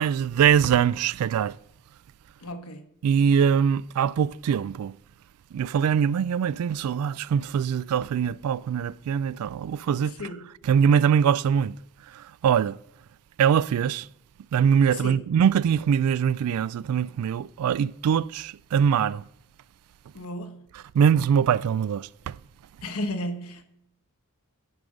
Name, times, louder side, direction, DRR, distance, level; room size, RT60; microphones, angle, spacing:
voice 1, 0.0-1.6 3.0-5.0 5.5-10.3 10.6-11.8 12.1-12.8 13.4-14.1 14.5-19.2 20.9-22.4, right 8 dB, 85° right, 0.3 m, -23 dB
voice 2, 2.4-2.9 10.2-10.5 14.9-15.2 20.1-20.6 22.8-23.6, left 1 dB, 85° left, 1.2 m, -33 dB
11.0 x 5.4 x 5.0 m
head